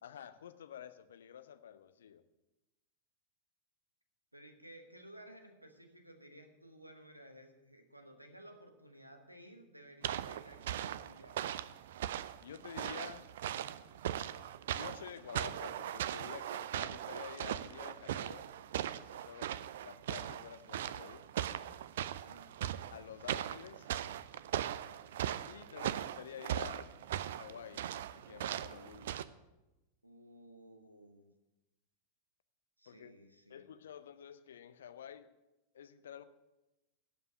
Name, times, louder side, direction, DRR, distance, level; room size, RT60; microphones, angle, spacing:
voice 1, 0.0-2.2 12.4-13.3 14.7-18.4 18.9-19.5 19.8-21.3 22.9-23.9 25.5-26.9 27.2-27.8 28.3-29.2 32.9-33.1 33.5-35.3 35.7-36.2, left 9 dB, 65° left, 13 dB, 0.6 m, -50 dB
voice 2, 4.3-11.5 22.2-22.6 25.5-26.1 30.0-31.3 32.8-33.7, right 1 dB, 85° right, 6 dB, 1.2 m, -56 dB
sound 1, 10.0-29.2, right 11 dB, 60° right, 0.4 m, -39 dB
11.5 x 5.5 x 8.6 m, 1.0 s
figure-of-eight pair, 90°, 0 cm